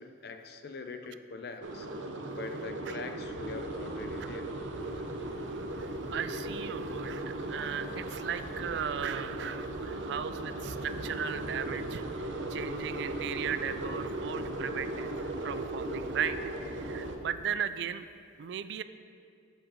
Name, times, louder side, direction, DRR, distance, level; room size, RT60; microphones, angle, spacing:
voice 1, 0.0-1.9 2.4-4.5, left 4 dB, 55° left, 7 dB, 0.5 m, -43 dB
sound 1, 1.6-17.2, right 1 dB, 80° right, 0.7 m, -37 dB
voice 2, 5.8-18.0 18.4-18.8, right 8 dB, 60° right, 12 dB, 0.3 m, -37 dB
7.8 x 6.4 x 5.0 m, 2.3 s
head